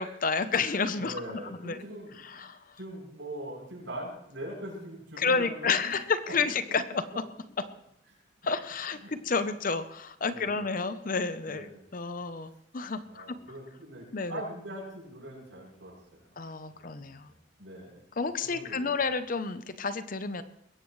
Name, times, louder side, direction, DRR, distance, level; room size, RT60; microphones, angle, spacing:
voice 1, 0.0-1.8 2.3-2.6 5.2-7.0 8.4-11.7 11.9-13.3 14.1-14.4 16.4-17.3 18.2-20.4, left 4 dB, 45° left, 12 dB, 0.8 m, -30 dB
voice 2, 0.9-5.9 6.7-6.8 9.0-9.1 10.2-10.6 11.5-12.0 13.1-16.4 16.7-18.9, right 1 dB, 80° right, -2 dB, 7.5 m, -42 dB
21.5 x 16.5 x 3.2 m, 0.75 s
head